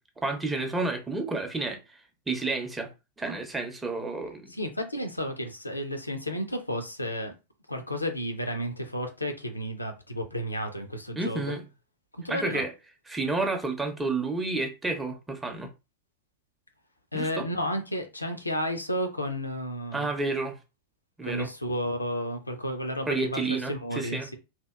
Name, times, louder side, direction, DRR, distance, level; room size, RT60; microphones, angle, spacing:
voice 1, 0.2-1.8 2.3-2.9 3.2-4.5 11.2-11.6 12.3-12.7 13.1-15.7 17.1-17.4 19.9-20.5 21.2-21.5 23.1-24.3, right 3 dB, 10° right, 0.5 m, -30 dB
voice 2, 4.5-7.3 7.7-11.6 12.1-12.7 17.1-20.1 21.2-24.4, equal, 85° left, 0.4 m, -32 dB
2.7 x 2.1 x 2.2 m
figure-of-eight pair, 90°, 0 cm